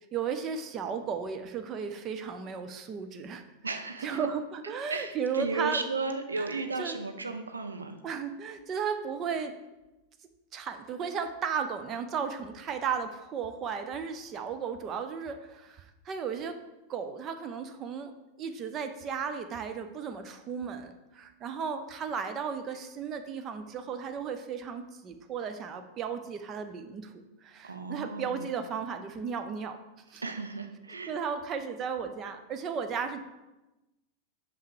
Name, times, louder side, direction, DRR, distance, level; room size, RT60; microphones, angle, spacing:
voice 1, 0.1-3.4 4.0-5.8 6.4-7.0 8.0-9.5 10.5-16.6 16.9-18.1 18.4-29.8 30.1-30.2 31.1-33.2, right 6 dB, 30° right, 8 dB, 0.6 m, -35 dB
voice 2, 3.6-4.2 4.9-8.0 27.6-28.5 30.2-31.1, right 3 dB, 75° right, 7 dB, 0.6 m, -34 dB
5.7 x 5.3 x 4.8 m, 1.0 s
figure-of-eight pair, 90°, 0 cm